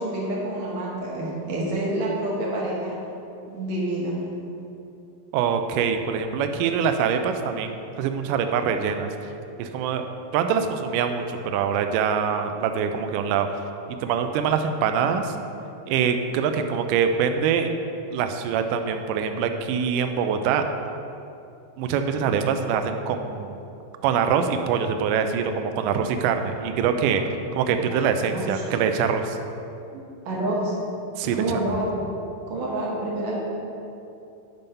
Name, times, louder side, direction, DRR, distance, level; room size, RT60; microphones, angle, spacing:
voice 1, 0.0-3.0 3.5-4.2 28.2-28.6 29.9-30.7 31.2-32.0 32.5-33.4, right 1 dB, 60° right, -4 dB, 2.1 m, -28 dB
voice 2, 5.3-9.1 9.6-10.1 10.3-13.5 14.0-15.3 15.9-17.7 18.1-20.7 21.8-23.6 24.0-27.2 27.5-29.4 31.2-31.6, right 7 dB, 90° right, 6 dB, 1.9 m, -24 dB
9.2 x 5.3 x 5.5 m, 2.8 s
omnidirectional pair, 4.4 m